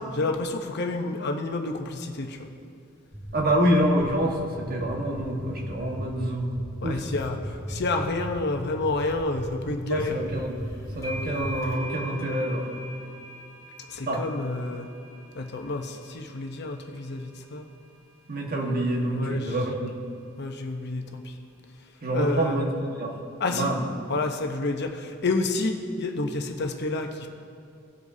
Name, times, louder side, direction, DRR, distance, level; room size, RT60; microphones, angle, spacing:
voice 1, 0.1-2.4 6.8-7.4 7.7-10.2 13.9-14.9 15.3-17.6 19.2-19.5 20.4-21.2 22.1-22.6 23.4-23.7 24.1-27.3, left 2 dB, 55° left, 4 dB, 0.8 m, -29 dB
sound 1, 3.1-11.5, equal, 15° right, 2.1 m, -36 dB
voice 2, 3.3-6.5 6.8-7.0 9.9-10.6 10.9-12.6 14.1-14.3 18.3-19.9 22.0-23.2 23.5-23.9, right 1 dB, 45° right, 0 dB, 1.5 m, -26 dB
sound 2, 10.1-10.4 10.6-17.9, right 1 dB, 20° left, 1.8 m, -43 dB
19.0 x 7.9 x 2.7 m, 2.4 s
head